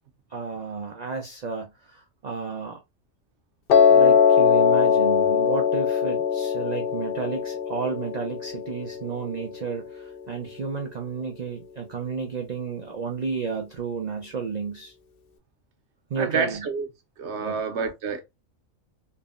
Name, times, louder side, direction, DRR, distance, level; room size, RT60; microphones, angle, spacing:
voice 1, 0.3-2.8 3.9-14.9 16.1-16.6 17.4-17.6, right 5 dB, 90° right, 0.3 m, -32 dB
Piano, 3.7-9.8, left 7 dB, 65° left, 0.5 m, -21 dB
voice 2, 16.2-16.9 17.2-18.2, right 5 dB, 65° right, 0.8 m, -28 dB
3.4 x 2.0 x 2.3 m
omnidirectional pair, 1.4 m